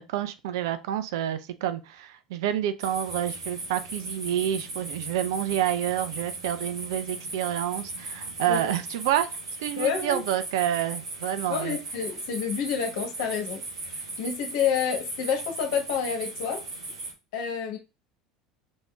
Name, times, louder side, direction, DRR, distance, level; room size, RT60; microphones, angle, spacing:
voice 1, 0.0-9.3 9.6-11.8, right 11 dB, 65° right, 0.5 m, -28 dB
sound 1, 2.8-17.1, right 2 dB, 80° right, 1.1 m, -37 dB
voice 2, 9.8-10.2 11.5-16.6 17.3-17.8, left 7 dB, 65° left, 1.2 m, -29 dB
5.3 x 3.6 x 2.3 m
figure-of-eight pair, 70°, 2 cm